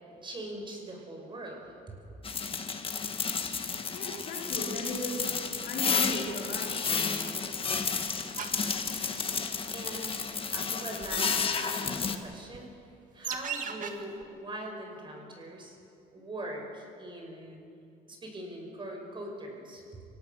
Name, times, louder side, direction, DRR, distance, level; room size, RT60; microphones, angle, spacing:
voice 1, 0.2-2.0 9.7-10.2 10.5-12.7 13.1-15.8 16.1-17.6 18.1-20.0, right 1 dB, 30° right, 1 dB, 5.5 m, -42 dB
sound 1, 2.2-12.2, left 5 dB, 30° left, 1.5 m, -31 dB
voice 2, 3.7-6.9 7.2-7.5, left 1 dB, 70° left, -2 dB, 4.7 m, -38 dB
sound 2, 8.4-8.7 9.4-9.7 10.2-10.6 11.0-11.1 11.4-11.5 12.1-12.2 12.5-12.6 13.2-13.9 14.2-14.3, right 7 dB, 50° right, 1.9 m, -37 dB
25.5 x 17.5 x 6.5 m, 2.6 s
cardioid pair, 110°, 17 cm